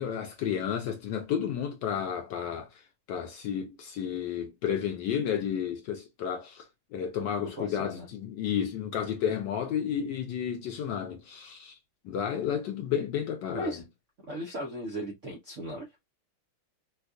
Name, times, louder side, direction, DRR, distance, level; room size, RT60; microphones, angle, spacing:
voice 1, 0.0-11.8 12.0-13.8, left 8 dB, 75° left, 1.0 m, -32 dB
voice 2, 7.4-8.1 13.5-13.8 14.3-16.0, equal, 60° right, 0.7 m, -37 dB
4.5 x 2.3 x 2.4 m
omnidirectional pair, 2.3 m